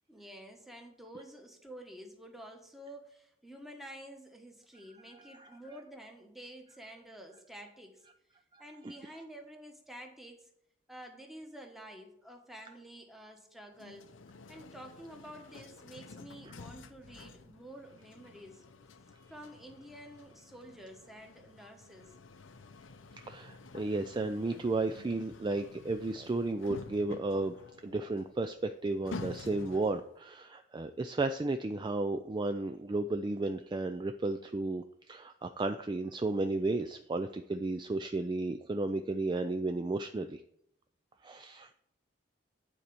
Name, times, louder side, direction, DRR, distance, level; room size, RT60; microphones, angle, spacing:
voice 1, 0.1-8.0 8.6-10.5 10.9-14.1 14.5-18.6 19.3-22.1, right 1 dB, ahead, 2 dB, 1.2 m, -50 dB
sound 1, 13.7-30.2, left 3 dB, 90° left, 0.6 m, -50 dB
voice 2, 23.2-27.5 27.8-40.4 41.2-41.7, right 2 dB, 25° right, 8 dB, 0.3 m, -33 dB
9.2 x 4.3 x 6.8 m, 0.73 s
head